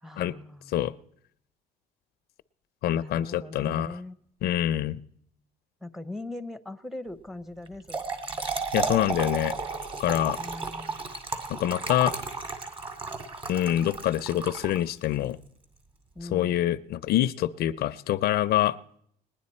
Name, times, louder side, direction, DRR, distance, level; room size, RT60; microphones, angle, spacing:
voice 1, 0.0-0.7 2.9-4.2 5.8-8.0 10.4-11.1 16.2-16.6, left 2 dB, ahead, 11 dB, 0.7 m, -40 dB
voice 2, 2.8-4.0 4.4-5.0 8.7-9.5 10.0-10.4 11.5-12.1 13.5-15.4 16.3-18.8, left 12 dB, 70° left, 16 dB, 0.5 m, -25 dB
Trickle dribble / Fill (with liquid), 7.7-15.1, right 4 dB, 30° right, 2.0 m, -33 dB
20.0 x 10.0 x 4.3 m, 0.68 s
cardioid pair, 110°, 17 cm